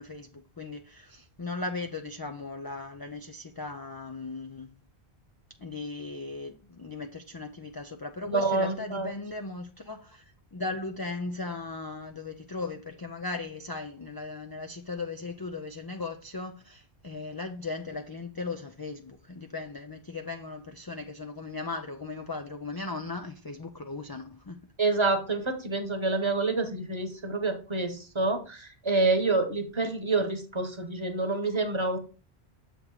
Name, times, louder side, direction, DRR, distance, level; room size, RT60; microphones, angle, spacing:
voice 1, 0.0-4.8 5.6-24.6, left 3 dB, 40° left, 0.3 m, -37 dB
voice 2, 8.3-9.1 24.8-32.0, right 3 dB, 25° right, 1.0 m, -27 dB
7.4 x 3.4 x 4.7 m
omnidirectional pair, 1.1 m